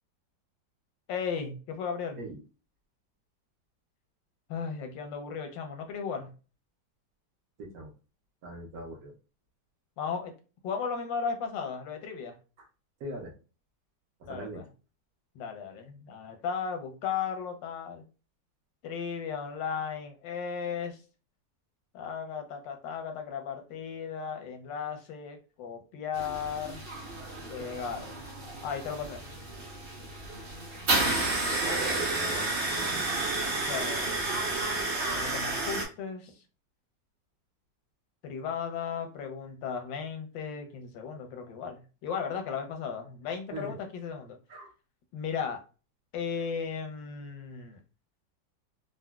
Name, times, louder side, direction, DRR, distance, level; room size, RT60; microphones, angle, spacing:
voice 1, 1.1-2.2 4.5-6.3 10.0-10.3 10.6-12.4 14.2-14.6 15.4-18.0 18.8-21.0 21.9-26.8 27.5-28.1 28.6-29.2 33.7-34.4 35.1-36.3 38.2-44.4 45.1-45.6 46.1-47.8, left 6 dB, 90° left, 5 dB, 1.4 m, -35 dB
voice 2, 7.6-7.9 8.4-9.1 13.0-13.3 14.3-14.6 31.6-33.1 43.5-43.8 44.5-44.7, right 1 dB, 65° right, -1 dB, 1.1 m, -40 dB
sound 1, 26.1-35.8, right 2 dB, 40° right, 1.0 m, -31 dB
3.8 x 2.0 x 2.2 m, 0.34 s
omnidirectional pair, 1.9 m